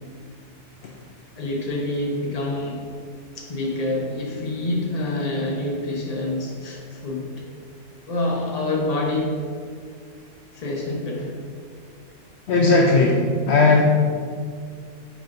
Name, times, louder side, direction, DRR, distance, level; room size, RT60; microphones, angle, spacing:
voice 1, 1.4-2.9 3.3-7.5 8.0-9.4 10.5-11.4, left 2 dB, 35° left, -1 dB, 1.0 m, -27 dB
voice 2, 12.5-13.8, left 3 dB, 65° left, 0 dB, 0.8 m, -17 dB
9.1 x 4.7 x 2.6 m, 2.1 s
omnidirectional pair, 1.3 m